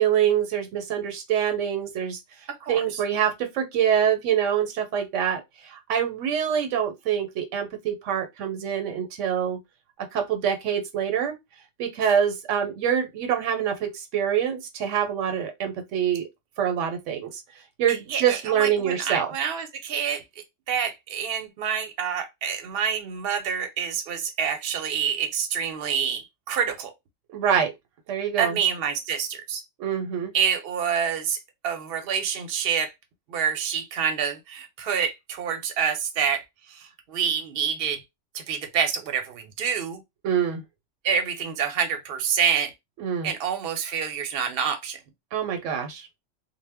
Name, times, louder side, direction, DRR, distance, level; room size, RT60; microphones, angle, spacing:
voice 1, 0.0-2.2 2.7-9.6 10.1-11.3 11.8-16.3 16.6-17.4 17.8-19.3 27.3-27.7 28.1-28.6 29.8-30.3 40.2-40.6 43.0-43.3 45.3-46.1, right 8 dB, 85° right, 0.9 m, -25 dB
voice 2, 17.9-26.9 28.4-29.6 30.3-31.4 31.6-32.9 33.3-36.4 36.7-38.0 38.3-40.0 41.0-42.7 43.2-45.0, right 7 dB, 60° right, 0.7 m, -27 dB
2.1 x 2.0 x 3.4 m
omnidirectional pair, 1.3 m